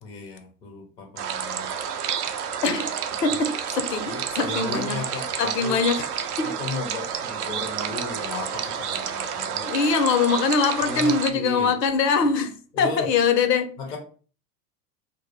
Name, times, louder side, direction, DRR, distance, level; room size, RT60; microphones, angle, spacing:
voice 1, 0.0-1.7 3.3-3.4 4.1-5.8 6.4-9.7 10.8-11.7 12.7-13.1 13.8-14.0, left 3 dB, 10° left, 0.3 m, -35 dB
sound 1, 1.2-11.3, right 8 dB, 70° right, 0.5 m, -30 dB
voice 2, 2.6-2.9 3.2-5.0 5.4-6.0 6.4-6.5 9.6-13.8, left 5 dB, 85° left, 0.5 m, -23 dB
2.2 x 2.0 x 3.0 m
figure-of-eight pair, 85°, 48 cm